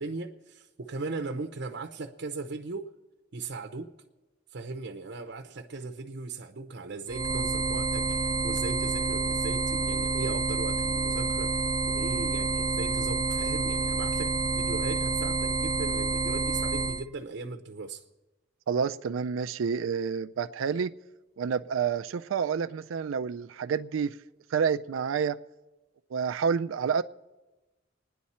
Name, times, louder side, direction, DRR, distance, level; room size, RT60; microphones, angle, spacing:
voice 1, 0.0-2.9 3.3-3.9 4.5-18.0, right 3 dB, 60° right, 0.7 m, -38 dB
sound 1, 7.1-17.0, right 3 dB, 20° right, 0.4 m, -28 dB
voice 2, 18.7-20.9 21.4-24.2 24.5-25.4 26.1-27.0, right 6 dB, 85° right, 0.4 m, -29 dB
25.5 x 10.0 x 4.3 m
head